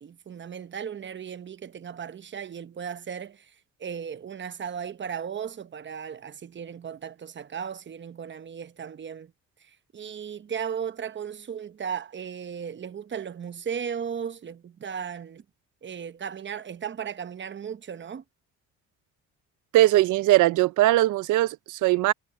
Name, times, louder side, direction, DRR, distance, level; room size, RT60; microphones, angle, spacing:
voice 1, 0.0-3.5 3.8-9.3 9.6-15.4 15.8-18.2, right 7 dB, 40° right, 0.9 m, -36 dB
voice 2, 19.7-22.1, right 16 dB, 85° right, 0.6 m, -20 dB
cardioid pair, 90°, 30 cm